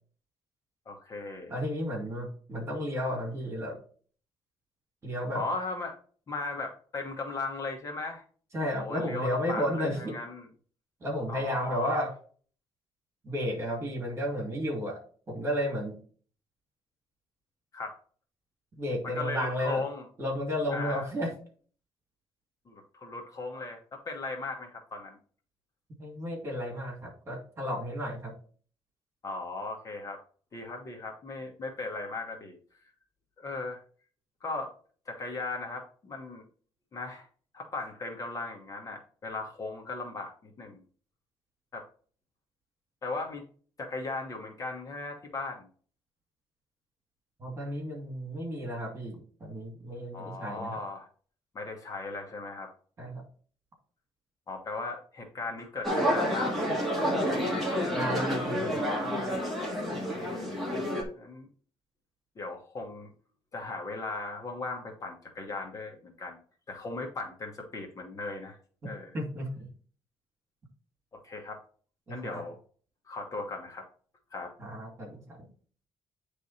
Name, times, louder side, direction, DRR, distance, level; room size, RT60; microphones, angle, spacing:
voice 1, 0.8-1.5 5.3-6.0 6.3-8.2 8.8-10.4 11.3-12.0 17.7-18.0 19.0-20.0 20.7-21.0 22.7-25.2 29.2-30.2 30.5-32.6 33.4-33.8 34.4-34.7 35.1-36.5 36.9-37.3 37.5-40.8 41.7-41.9 43.0-43.4 43.8-45.7 50.1-51.1 51.5-52.7 54.5-56.5 59.9-60.5 61.1-61.5 62.4-63.1 63.5-66.4 66.7-68.6 68.8-69.1 71.1-71.6 72.1-72.6 73.0-73.9 74.3-74.5, left 3 dB, 35° left, 2 dB, 1.3 m, -37 dB
voice 2, 1.5-3.8 5.0-5.4 8.5-10.1 11.0-12.1 13.2-15.0 15.3-16.0 18.7-19.8 20.2-21.3 26.0-28.3 47.4-50.8 53.0-53.2 57.9-58.8 68.8-69.7 72.1-72.4 74.6-75.5, equal, 30° right, 1 dB, 2.5 m, -33 dB
sound 1, 55.8-61.0, equal, ahead, 2.0 m, -29 dB
9.2 x 3.4 x 4.2 m, 0.43 s
cardioid pair, 145°, 10 cm